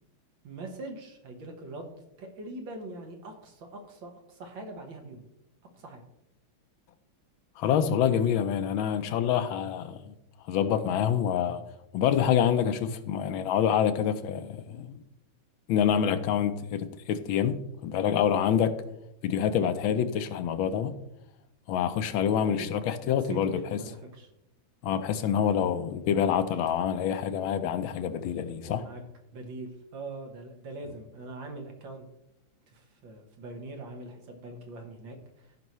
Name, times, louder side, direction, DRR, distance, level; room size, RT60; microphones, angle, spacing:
voice 1, 0.4-5.2 5.8-6.0 19.4-19.7 22.5-22.7 23.1-24.3 24.8-25.0 28.6-29.0 29.3-32.1 32.7-35.6, right 2 dB, 75° right, 2.1 m, -42 dB
voice 2, 7.6-10.1 10.5-11.6 11.9-14.9 15.7-18.8 19.2-20.9 21.7-23.8 24.8-28.9, left 8 dB, 85° left, 1.5 m, -26 dB
15.0 x 5.4 x 3.1 m
omnidirectional pair, 2.2 m